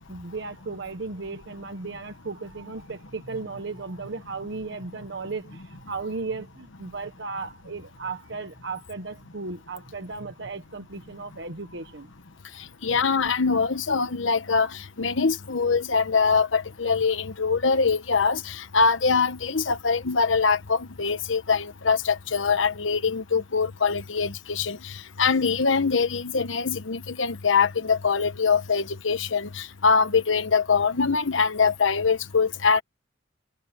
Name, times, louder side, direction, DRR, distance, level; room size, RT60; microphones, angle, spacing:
voice 1, 0.1-12.1 12.8-13.0, right 3 dB, 65° right, 1.3 m, -35 dB
voice 2, 12.8-32.8, left 5 dB, 90° left, 1.1 m, -23 dB
head